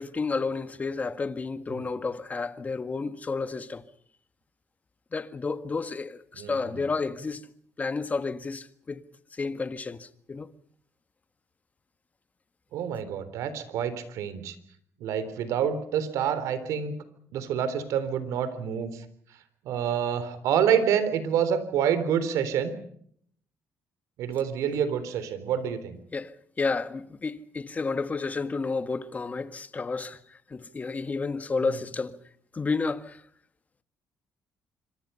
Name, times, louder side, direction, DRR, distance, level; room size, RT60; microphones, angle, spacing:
voice 1, 0.0-3.8 5.1-7.5 7.8-9.0 9.3-10.5 26.1-26.3 26.6-32.2 32.5-33.2, left 4 dB, 30° left, 1.7 m, -31 dB
voice 2, 6.3-6.8 12.7-14.6 15.0-17.0 17.3-19.0 19.7-22.7 24.2-26.0, right 8 dB, 85° right, 3.7 m, -27 dB
26.5 x 25.5 x 5.7 m
cardioid pair, 95°, 5 cm